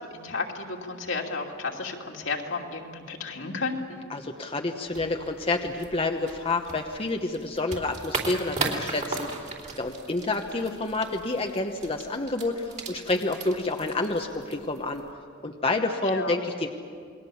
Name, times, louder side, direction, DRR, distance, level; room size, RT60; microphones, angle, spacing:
voice 1, 0.0-4.0 10.6-10.7 16.0-16.4, left 4 dB, 70° left, 0 dB, 2.8 m, -33 dB
voice 2, 4.1-15.0 15.4-16.7, left 2 dB, 30° left, 3 dB, 1.0 m, -29 dB
sound 1, 4.9-15.1, right 3 dB, 35° right, 3.2 m, -37 dB
28.5 x 21.5 x 7.1 m, 2.2 s
head